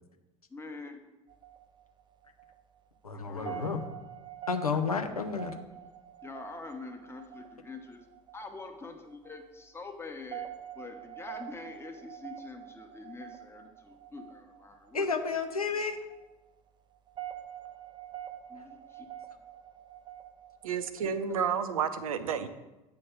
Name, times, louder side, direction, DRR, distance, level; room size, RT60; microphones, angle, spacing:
voice 1, 0.5-1.0 3.1-3.8 6.2-8.0 8.3-10.5 10.7-15.1 18.5-19.1 21.0-21.5, left 3 dB, 15° left, 4 dB, 1.0 m, -45 dB
sound 1, 1.3-20.9, right 11 dB, 25° right, 0.5 m, -47 dB
voice 2, 3.0-3.8 4.5-5.6 14.9-16.0, left 5 dB, 85° left, 5 dB, 0.6 m, -31 dB
voice 3, 20.6-22.5, right 7 dB, 70° right, 12 dB, 0.6 m, -31 dB
8.5 x 3.2 x 5.8 m, 1.0 s
figure-of-eight pair, 65°, 18 cm